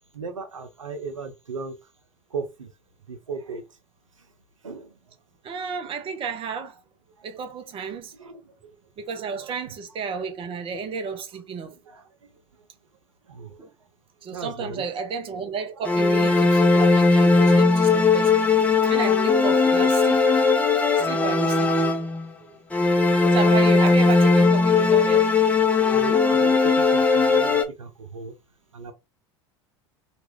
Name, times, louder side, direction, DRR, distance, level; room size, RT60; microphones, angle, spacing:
voice 1, 0.1-1.8 2.3-2.7 3.1-3.6 4.6-4.9 8.2-8.7 9.1-9.5 11.1-11.2 11.9-12.1 13.3-13.6 14.3-14.8 16.9-17.0 20.7-20.8 22.0-22.1 22.4-22.6 25.8-28.3 28.7-28.9, right 4 dB, 85° right, 0.5 m, -37 dB
voice 2, 5.4-6.8 7.2-8.1 9.0-11.7 13.6-13.7 14.2-18.3 18.8-20.2 21.0-21.7 23.2-25.3, right 5 dB, 35° right, 0.9 m, -32 dB
sound 1, 15.8-22.3 22.7-27.6, left 4 dB, 10° left, 0.7 m, -18 dB
2.9 x 2.4 x 3.1 m
figure-of-eight pair, 80°, 16 cm